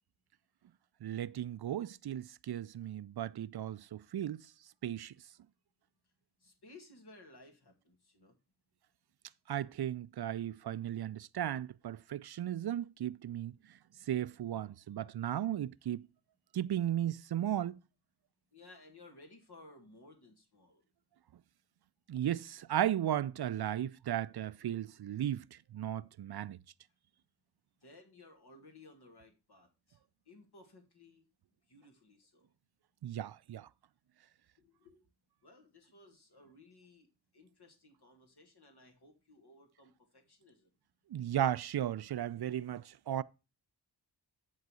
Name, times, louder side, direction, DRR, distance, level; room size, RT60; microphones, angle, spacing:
voice 1, 1.0-4.4 4.8-5.1 9.5-13.5 14.1-16.0 16.5-17.8 22.1-26.6 33.0-33.7 41.1-43.2, right 11 dB, 65° right, 0.5 m, -35 dB
voice 2, 6.4-8.4 18.5-20.8 27.8-30.0 30.3-31.2 31.7-32.5 34.6-35.0 35.4-37.1 37.3-40.7, left 2 dB, 65° left, 2.0 m, -58 dB
10.5 x 4.0 x 6.2 m
wide cardioid pair, 65°, 43 cm